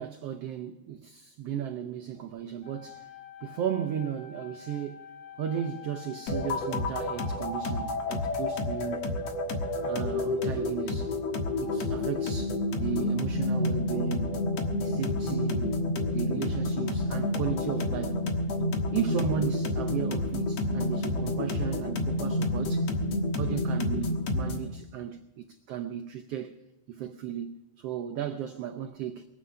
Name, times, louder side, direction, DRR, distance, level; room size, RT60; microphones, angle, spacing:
voice 1, 0.0-3.1 3.4-5.1 5.4-9.2 9.8-11.1 11.6-14.4 14.7-15.8 16.1-18.2 18.9-23.0 23.4-26.5 26.9-29.3, right 9 dB, 75° right, 1.4 m, -35 dB
sound 1, 2.6-7.6, left 8 dB, 85° left, 6.0 m, -47 dB
sound 2, 6.3-24.7, left 2 dB, 65° left, 2.5 m, -29 dB
23.0 x 8.2 x 5.6 m
omnidirectional pair, 3.5 m